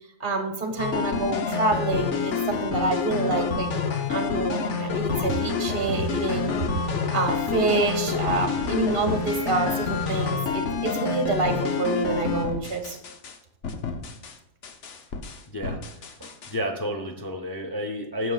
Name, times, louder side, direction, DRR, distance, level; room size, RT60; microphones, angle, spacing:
voice 1, 0.2-3.7 4.1-6.5 7.1-13.0, right 3 dB, 40° right, 4 dB, 1.2 m, -27 dB
sound 1, 0.8-13.3 13.6-14.3 14.6-16.5, left 5 dB, 55° left, 1.0 m, -28 dB
sound 2, 5.3-10.3, left 1 dB, 80° left, 3.7 m, -40 dB
voice 2, 16.2-18.3, equal, 25° left, 2 dB, 0.4 m, -31 dB
18.5 x 6.3 x 2.3 m, 0.87 s
omnidirectional pair, 1.6 m